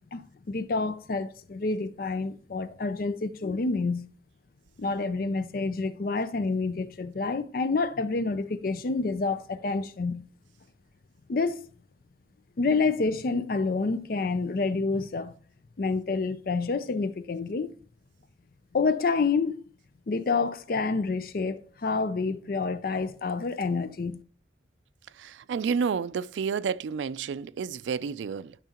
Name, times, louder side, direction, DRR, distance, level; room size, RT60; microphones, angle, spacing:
voice 1, 0.1-4.1 4.8-10.2 11.3-11.6 12.6-15.3 15.8-17.7 18.7-19.6 20.1-24.2, left 4 dB, 50° left, 0.4 m, -28 dB
voice 2, 25.2-28.6, right 6 dB, 85° right, 0.3 m, -30 dB
10.5 x 5.8 x 2.9 m
head